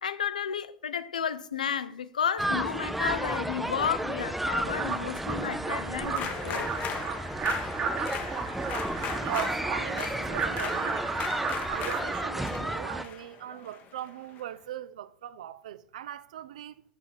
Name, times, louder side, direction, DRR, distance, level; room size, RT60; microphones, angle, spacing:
voice 1, 0.0-6.8, left 7 dB, 75° left, 0.4 m, -32 dB
sound 1, 2.4-13.0, right 1 dB, 5° right, 0.4 m, -33 dB
sound 2, 4.6-12.3, right 5 dB, 35° right, 1.1 m, -34 dB
sound 3, 6.1-14.4, left 8 dB, 40° left, 0.8 m, -39 dB
voice 2, 9.2-11.1 11.7-16.8, right 12 dB, 65° right, 0.4 m, -40 dB
6.7 x 6.3 x 3.9 m
figure-of-eight pair, 80°, 4 cm